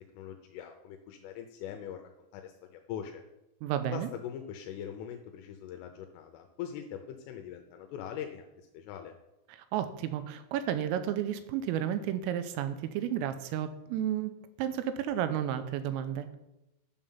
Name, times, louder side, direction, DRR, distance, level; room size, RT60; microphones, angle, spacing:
voice 1, 0.1-2.0 2.3-3.2 3.9-9.1, left 9 dB, 80° left, 5 dB, 3.2 m, -42 dB
voice 2, 3.6-4.1 9.5-14.3 14.6-16.3, right 10 dB, 85° right, 10 dB, 3.3 m, -32 dB
11.5 x 7.1 x 5.6 m, 0.93 s
omnidirectional pair, 5.9 m